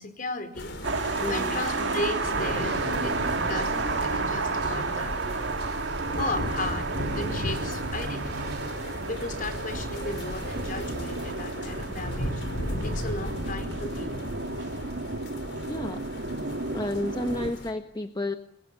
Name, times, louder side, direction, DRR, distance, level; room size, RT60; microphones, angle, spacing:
voice 1, 0.0-5.2 6.0-6.9 7.2-8.5 8.8-12.4 12.8-14.2, left 2 dB, 45° left, 9 dB, 4.9 m, -35 dB
sound 1, 0.5-17.7, left 1 dB, 75° left, 5.2 m, -36 dB
sound 2, 0.8-17.5, right 3 dB, 75° right, 2.1 m, -32 dB
voice 2, 1.2-1.6 15.7-16.0 16.7-18.3, left 2 dB, 25° left, 6 dB, 1.4 m, -31 dB
sound 3, 2.2-11.3, right 1 dB, 60° right, 2.9 m, -38 dB
28.5 x 22.5 x 9.0 m, 0.74 s
head